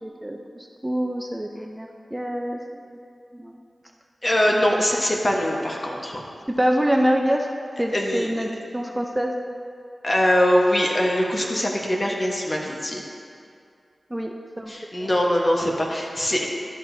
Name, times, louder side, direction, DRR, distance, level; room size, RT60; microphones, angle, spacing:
voice 1, 0.0-2.6 2.9-3.0 3.3-3.6 4.8-4.9 6.5-7.5 7.8-9.3 14.1-15.1, equal, 15° right, 2 dB, 0.6 m, -26 dB
voice 2, 4.2-6.2 7.9-8.5 10.0-13.1 14.7-16.5, equal, 40° left, -1 dB, 1.3 m, -22 dB
12.0 x 6.0 x 2.7 m, 2.4 s
cardioid pair, 40°, 0 cm